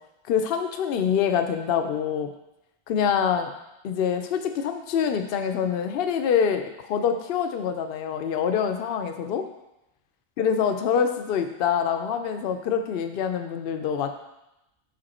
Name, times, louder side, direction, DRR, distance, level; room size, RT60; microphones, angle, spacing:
voice 1, 0.3-2.3 2.9-3.5 3.8-9.5 10.4-14.1, left 7 dB, 65° left, 6 dB, 0.7 m, -25 dB
5.7 x 5.2 x 4.2 m, 0.91 s
omnidirectional pair, 1.1 m